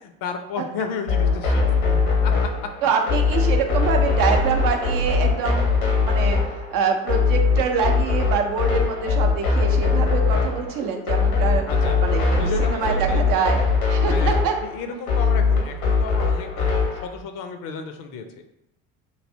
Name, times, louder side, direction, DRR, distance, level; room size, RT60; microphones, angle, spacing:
voice 1, 0.0-2.3 11.7-13.3 14.1-18.4, left 5 dB, 55° left, 6 dB, 0.5 m, -33 dB
sound 1, 1.1-17.0, left 4 dB, 85° left, 0.9 m, -21 dB
voice 2, 2.8-13.6 13.9-14.6, right 6 dB, 55° right, 4 dB, 0.6 m, -25 dB
3.2 x 2.6 x 2.6 m, 0.81 s
hypercardioid pair, 65°, 42 cm